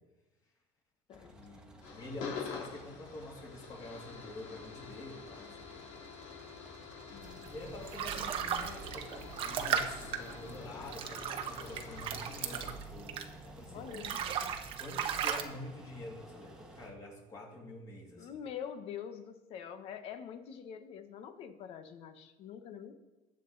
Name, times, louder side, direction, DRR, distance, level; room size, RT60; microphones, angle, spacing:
sound 1, 1.1-16.9, right 1 dB, 5° right, 1.3 m, -53 dB
voice 1, 1.3-1.7 1.9-5.9 7.5-14.2 14.8-18.4, left 2 dB, 25° left, -1 dB, 2.8 m, -47 dB
sound 2, 1.8-12.7, left 6 dB, 60° left, 3.2 m, -47 dB
voice 2, 7.1-7.5 13.7-14.5 18.2-22.9, left 8 dB, 45° left, 8 dB, 1.2 m, -45 dB
sound 3, 7.4-13.5 13.8-15.4, right 8 dB, 40° right, 1.1 m, -36 dB
20.5 x 7.8 x 4.0 m, 1.0 s
cardioid pair, 170°, 14 cm